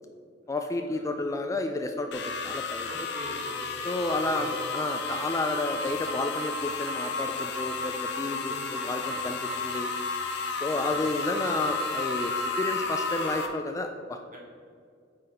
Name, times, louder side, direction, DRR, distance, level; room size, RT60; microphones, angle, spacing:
voice 1, 0.5-3.1 3.8-9.9 10.6-14.2, left 2 dB, 15° left, 5 dB, 0.3 m, -31 dB
sound 1, 2.1-13.5, left 3 dB, 65° left, 0.7 m, -32 dB
voice 2, 2.8-4.6 8.4-8.8 10.7-11.0 14.3-14.4, right 1 dB, 45° right, -3 dB, 1.9 m, -42 dB
8.6 x 4.1 x 5.0 m, 2.2 s
head